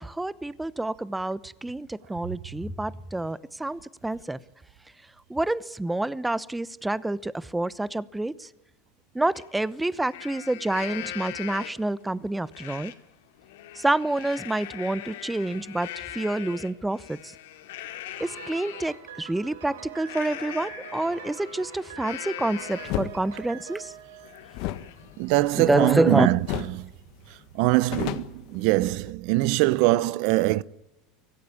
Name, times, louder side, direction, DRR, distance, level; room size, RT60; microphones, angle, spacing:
voice 1, 0.0-4.4 5.3-8.5 9.1-12.9 13.8-17.3 18.2-23.9 25.5-26.3, right 2 dB, 10° right, 0.9 m, -28 dB
Livestock farm animals working animals, 9.3-9.4 9.9-11.9 12.5-12.9 13.3-18.9 20.0-23.1 23.5-23.6 24.0-26.3, left 12 dB, 80° left, 2.7 m, -41 dB
Piano, 18.2-25.0, right 9 dB, 85° right, 3.7 m, -44 dB
sound 1, 22.8-23.1 24.5-26.1 26.4-26.8 27.1-27.2 27.6-29.1, left 15 dB, 60° left, 1.7 m, -33 dB
voice 2, 25.2-26.4 26.8-26.9 27.6-30.6, right 18 dB, 65° right, 0.7 m, -22 dB
25.0 x 17.5 x 8.5 m
supercardioid pair, 105°, 0 cm